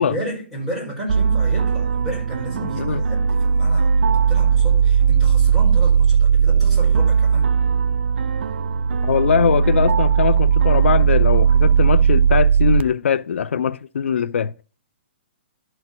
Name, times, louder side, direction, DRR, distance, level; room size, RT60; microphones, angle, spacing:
voice 1, 0.0-4.0 4.3-7.5, right 1 dB, ahead, 4.5 m, -32 dB
sound 1, 1.1-12.8, right 6 dB, 70° right, 0.5 m, -17 dB
voice 2, 9.0-14.5, left 7 dB, 85° left, 0.4 m, -21 dB
12.0 x 4.5 x 6.0 m
hypercardioid pair, 170°, 6 cm